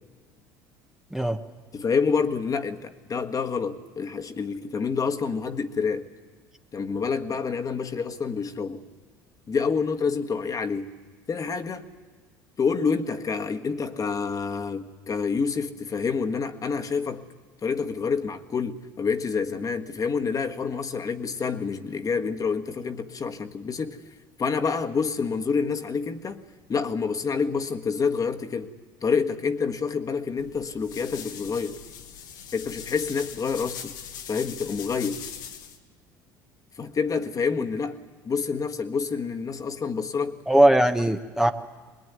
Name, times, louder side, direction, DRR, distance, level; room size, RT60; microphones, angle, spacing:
voice 1, 1.7-6.1 6.7-8.8 9.5-10.9 11.3-11.9 12.6-17.2 17.6-24.0 24.4-26.4 26.7-28.7 29.0-31.8 32.5-33.9 34.3-35.2 36.8-38.0 38.2-40.3, left 5 dB, 35° left, 1.6 m, -27 dB
sound 1, 30.4-35.8, left 8 dB, 85° left, 1.5 m, -41 dB
voice 2, 40.5-41.5, right 1 dB, 5° right, 1.1 m, -19 dB
22.0 x 20.0 x 9.6 m
hypercardioid pair, 75°, 10 cm